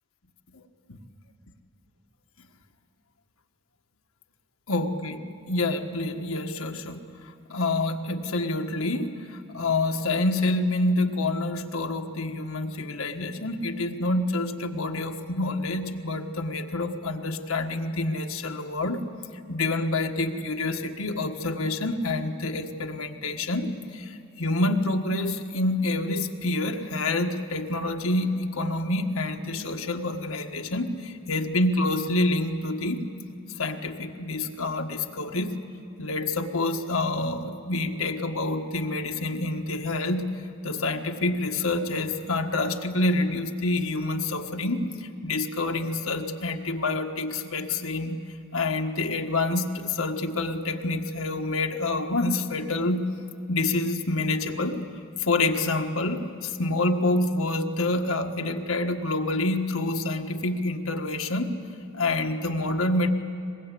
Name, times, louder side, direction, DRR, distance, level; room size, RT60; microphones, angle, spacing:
voice 1, 4.7-5.2 5.5-7.0 7.5-9.2 9.5-19.0 19.5-24.1 24.4-33.1 33.6-35.5 36.0-40.2 40.6-44.9 45.2-48.2 48.5-53.0 53.5-54.8 55.3-61.6 62.0-63.1, left 2 dB, 80° left, 4 dB, 1.6 m, -27 dB
23.0 x 21.5 x 8.5 m, 2.8 s
head